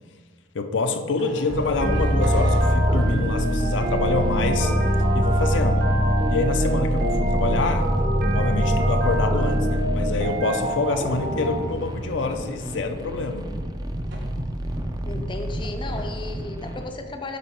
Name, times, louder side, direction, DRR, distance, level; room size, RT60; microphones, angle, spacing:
voice 1, 0.5-4.7 5.1-5.9 6.3-7.9 8.3-13.5, left 3 dB, 70° left, 7 dB, 0.6 m, -26 dB
sound 1, 1.1-2.7 3.3-3.7 7.1-7.5 7.9-8.3 10.3-10.7 11.2-11.6 12.0-12.5 13.2-13.6 14.0-16.0, equal, 65° right, 1.5 m, -43 dB
sound 2, 1.5-16.8, right 1 dB, 20° right, 0.5 m, -32 dB
sound 3, 1.8-11.6, equal, 45° right, 1.1 m, -22 dB
voice 2, 15.0-17.4, left 3 dB, 25° left, 5 dB, 0.5 m, -34 dB
8.8 x 3.8 x 5.9 m, 1.5 s
head